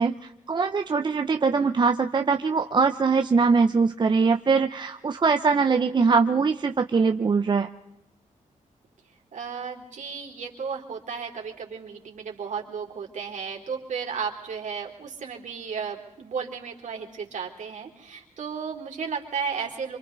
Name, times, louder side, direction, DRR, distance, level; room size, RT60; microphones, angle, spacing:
voice 1, 0.0-7.7, right 4 dB, 35° right, 6 dB, 0.8 m, -22 dB
voice 2, 9.3-20.0, right 6 dB, 65° right, 1 dB, 3.9 m, -34 dB
27.5 x 25.5 x 4.1 m, 0.84 s
wide cardioid pair, 125°, 14 cm